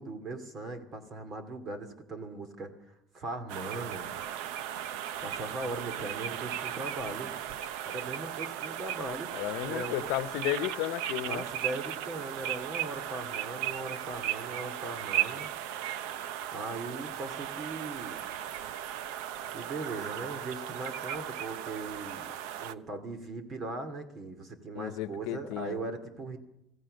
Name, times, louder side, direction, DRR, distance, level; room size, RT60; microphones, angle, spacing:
voice 1, 0.0-2.7 3.1-4.1 5.2-7.3 7.9-9.3 9.6-10.1 11.3-15.5 16.5-18.2 19.5-22.3 22.6-26.4, right 2 dB, 35° right, 2.6 m, -39 dB
sound 1, 3.5-22.7, right 11 dB, 85° right, 1.0 m, -36 dB
voice 2, 9.3-11.4 24.7-25.8, left 15 dB, 75° left, 1.0 m, -33 dB
26.0 x 16.0 x 6.6 m
cardioid pair, 150°, 0 cm